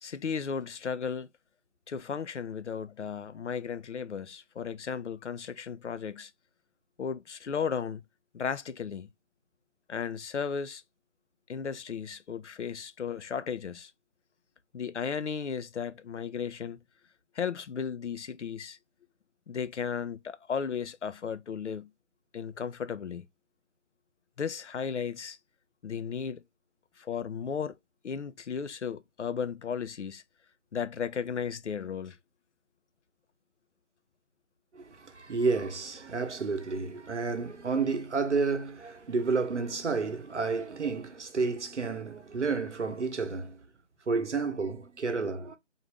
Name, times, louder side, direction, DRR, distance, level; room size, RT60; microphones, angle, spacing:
voice 1, 0.0-1.3 1.9-6.3 7.0-8.0 8.3-9.1 9.9-10.8 11.5-13.9 14.7-16.8 17.4-18.8 19.5-21.9 22.3-23.3 24.4-25.4 25.8-26.4 27.0-27.7 28.0-30.2 30.7-32.2, left 6 dB, 70° left, 0.5 m, -35 dB
voice 2, 34.7-43.6 44.1-45.6, right 4 dB, 70° right, 0.9 m, -31 dB
3.8 x 2.5 x 3.2 m
figure-of-eight pair, 180°, 37 cm